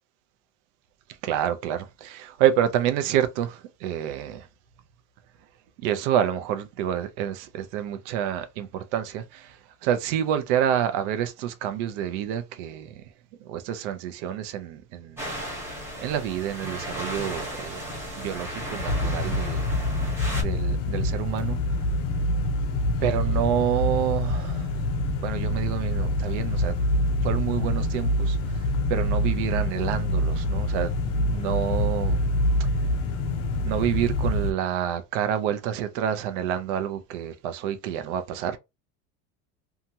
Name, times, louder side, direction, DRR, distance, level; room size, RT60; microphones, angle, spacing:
voice 1, 1.2-4.5 5.8-13.0 13.4-15.4 16.0-19.7 20.3-21.6 23.0-24.8 25.2-32.3 32.6-32.7 33.6-38.6, right 10 dB, 75° right, 0.6 m, -28 dB
sound 1, 15.2-20.4, equal, 5° right, 0.9 m, -34 dB
sound 2, 18.9-34.5, left 1 dB, 40° left, 0.4 m, -26 dB
2.8 x 2.3 x 2.7 m
cardioid pair, 170°, 37 cm